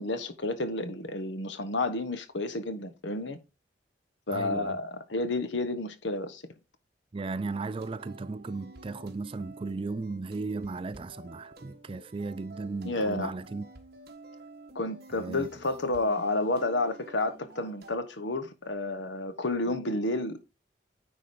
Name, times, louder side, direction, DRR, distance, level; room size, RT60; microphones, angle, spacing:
voice 1, 0.0-3.4 4.3-6.4 12.8-13.3 14.7-20.4, left 2 dB, 75° left, 1.2 m, -30 dB
voice 2, 4.3-4.8 7.1-13.7 15.1-15.5, right 3 dB, 30° right, 0.3 m, -36 dB
sound 1, 7.8-18.0, right 2 dB, 55° right, 1.5 m, -50 dB
9.7 x 3.8 x 5.1 m
head